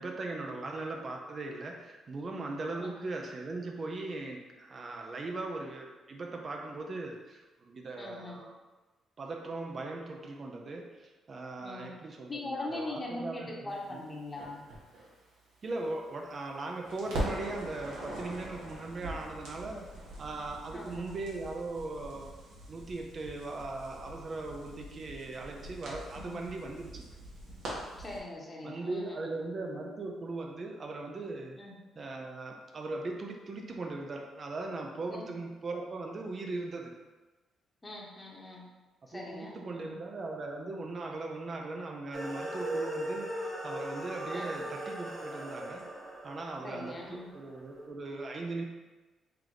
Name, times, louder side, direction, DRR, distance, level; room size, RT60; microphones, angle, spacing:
voice 1, 0.0-8.6 9.2-14.0 15.6-19.9 20.2-22.3 22.7-27.1 28.6-31.6 32.0-36.9 39.1-45.9 46.2-48.6, right 2 dB, 40° right, 1 dB, 0.5 m, -39 dB
voice 2, 8.0-8.4 11.6-12.0 12.3-14.7 20.7-21.2 26.1-26.5 28.0-29.5 31.5-31.8 35.1-35.3 37.8-38.7 39.1-40.0 44.3-44.5 46.6-47.3, left 2 dB, 20° left, -2 dB, 1.0 m, -42 dB
Crackle, 14.4-16.5 16.8-28.2, right 1 dB, 80° right, 1.1 m, -43 dB
sound 1, 42.1-47.6, right 1 dB, 25° right, 0.9 m, -38 dB
3.3 x 3.0 x 3.8 m, 1.2 s
cardioid pair, 90°, 0 cm